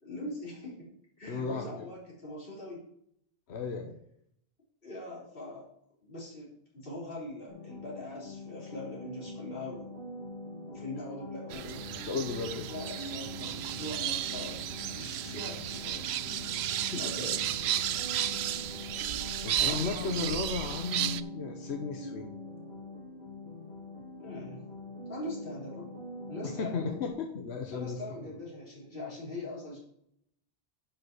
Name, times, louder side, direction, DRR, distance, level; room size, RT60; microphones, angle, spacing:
voice 1, 0.0-0.9 1.2-2.8 4.8-5.7 6.0-10.0 10.7-11.8 12.7-16.1 17.0-17.4 19.6-20.4 24.2-24.6 25.1-25.9 26.3-27.0 27.7-29.8, left 2 dB, 60° left, -5 dB, 3.8 m, -42 dB
voice 2, 1.3-1.9 3.5-3.9 12.1-12.7 16.9-17.1 19.4-22.3 26.4-28.3, left 5 dB, 80° left, 3 dB, 1.3 m, -35 dB
sound 1, 7.5-27.1, left 1 dB, 40° left, 3.3 m, -44 dB
sound 2, 11.5-21.2, right 11 dB, 75° right, 0.8 m, -33 dB
10.5 x 5.6 x 6.0 m, 0.71 s
omnidirectional pair, 1.1 m